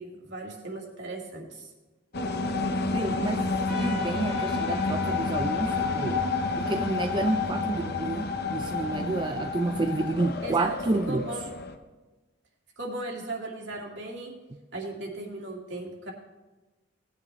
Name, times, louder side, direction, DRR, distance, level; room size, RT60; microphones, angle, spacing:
voice 1, 0.0-1.7 10.4-10.8 11.1-11.4 12.8-14.3 14.7-16.1, right 2 dB, 60° right, -1 dB, 2.2 m, -37 dB
sound 1, 2.1-11.8, left 3 dB, 50° left, 0.7 m, -29 dB
voice 2, 2.9-6.3 6.6-11.3, right 2 dB, 25° right, 6 dB, 0.3 m, -30 dB
Trumpet, 3.7-8.8, left 1 dB, 5° right, 1.4 m, -45 dB
19.0 x 9.5 x 3.2 m, 1.2 s
head